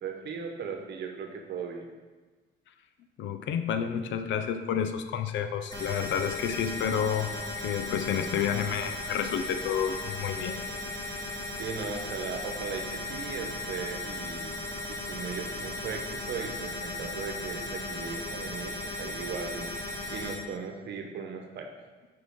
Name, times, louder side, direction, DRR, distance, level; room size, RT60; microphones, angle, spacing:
voice 1, 0.0-1.9 11.6-14.5 14.9-19.7 20.1-21.7, right 5 dB, 65° right, 3 dB, 1.0 m, -37 dB
voice 2, 3.2-7.3 7.6-10.6, left 8 dB, 75° left, 9 dB, 0.5 m, -30 dB
sound 1, 5.7-20.3, left 2 dB, 20° left, 1.7 m, -36 dB
6.1 x 5.0 x 3.7 m, 1.3 s
cardioid pair, 120°, 20 cm